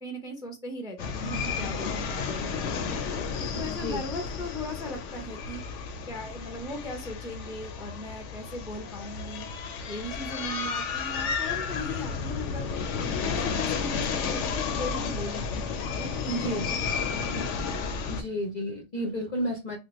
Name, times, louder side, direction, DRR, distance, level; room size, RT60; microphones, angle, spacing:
voice 1, 0.0-3.0 3.5-5.6 6.1-9.5 9.9-12.7 13.2-15.6 16.0-17.4 18.0-18.2, left 1 dB, 5° right, 2 dB, 0.4 m, -38 dB
sound 1, 1.0-18.2, left 5 dB, 70° left, 0.9 m, -32 dB
voice 2, 3.7-4.0 16.3-16.6 18.1-19.8, equal, 50° left, 0 dB, 0.5 m, -31 dB
3.3 x 2.1 x 2.9 m, 0.26 s
omnidirectional pair, 1.4 m